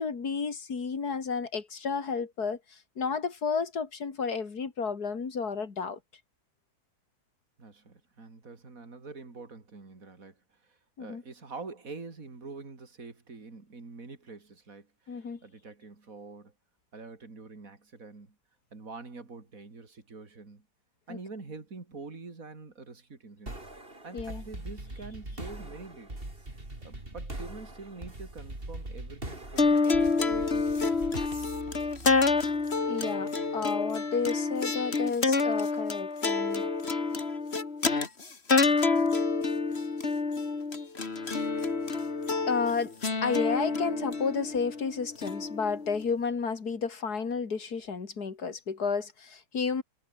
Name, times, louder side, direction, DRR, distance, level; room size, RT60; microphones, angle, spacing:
voice 1, 0.0-6.0 11.0-11.2 15.1-15.4 21.1-21.2 24.1-24.4 32.8-36.7 42.5-42.9 43.2-49.8, left 5 dB, 80° left, 3.1 m, -32 dB
voice 2, 7.6-16.5 16.9-18.4 18.7-20.6 21.1-23.6 24.0-26.2 26.8-31.0 46.0-46.2, right 4 dB, 60° right, 3.8 m, -46 dB
sound 1, 23.5-32.9, right 1 dB, 35° right, 5.5 m, -42 dB
sound 2, 29.6-46.0, left 4 dB, 40° left, 2.4 m, -28 dB
omnidirectional pair, 1.7 m